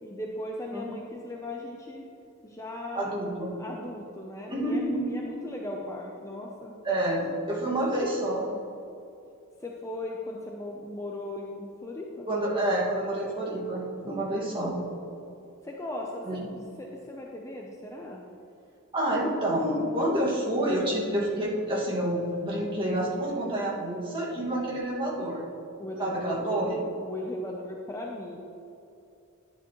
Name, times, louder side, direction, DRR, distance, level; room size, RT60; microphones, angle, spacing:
voice 1, 0.0-2.0 2.4-3.2 3.6-6.8 9.6-12.3 15.6-18.2 25.8-26.7 27.0-28.4, left 1 dB, 15° left, -1 dB, 0.7 m, -38 dB
voice 2, 2.9-3.5 4.5-5.2 6.8-8.5 12.3-14.8 16.3-16.5 18.9-25.5 26.0-26.8, right 1 dB, 25° right, -5 dB, 2.0 m, -28 dB
11.0 x 9.7 x 3.1 m, 2.7 s
head